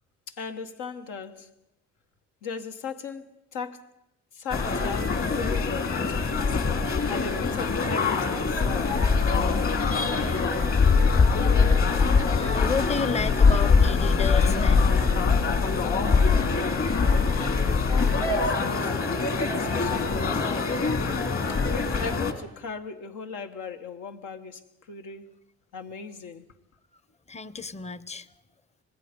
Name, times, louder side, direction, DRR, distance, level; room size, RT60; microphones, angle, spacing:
voice 1, 0.3-1.5 2.4-3.9 4.3-6.6 7.1-9.0 17.6-19.2 19.5-20.9 21.7-24.6 24.9-25.3 25.7-26.4, left 5 dB, 85° left, 1.5 m, -37 dB
sound 1, 4.5-22.3, left 4 dB, 45° left, 2.6 m, -23 dB
voice 2, 12.3-14.9 27.3-28.3, left 5 dB, 20° left, 0.8 m, -31 dB
25.5 x 20.0 x 5.3 m
cardioid pair, 90°, 30 cm